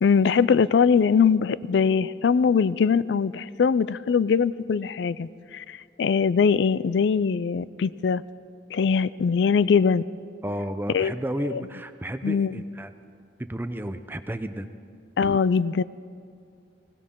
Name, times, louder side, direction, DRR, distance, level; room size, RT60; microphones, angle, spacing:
voice 1, 0.0-8.2 8.7-10.0 10.9-11.1 11.5-11.6 12.2-12.5 15.2-15.8, left 6 dB, 75° left, 19 dB, 0.4 m, -22 dB
voice 2, 10.4-12.9 13.4-14.7, right 1 dB, 10° right, 10 dB, 0.5 m, -32 dB
20.5 x 17.5 x 3.7 m, 2.3 s
head